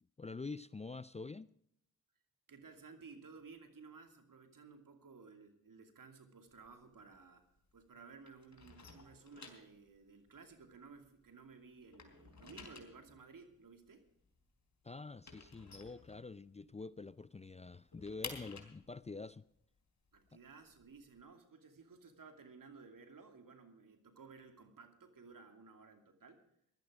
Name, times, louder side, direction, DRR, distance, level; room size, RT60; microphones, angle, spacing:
voice 1, 0.2-1.5 14.8-19.4, left 3 dB, 20° left, 0.5 m, -46 dB
voice 2, 2.5-7.4 7.7-14.0 20.1-26.4, right 4 dB, 65° right, 2.6 m, -56 dB
sound 1, 6.5-7.9 8.2-11.4 11.7-16.7 17.1-17.2 17.5-21.2, left 4 dB, 50° left, 3.7 m, -53 dB
16.0 x 12.0 x 4.9 m
supercardioid pair, 45°, 36 cm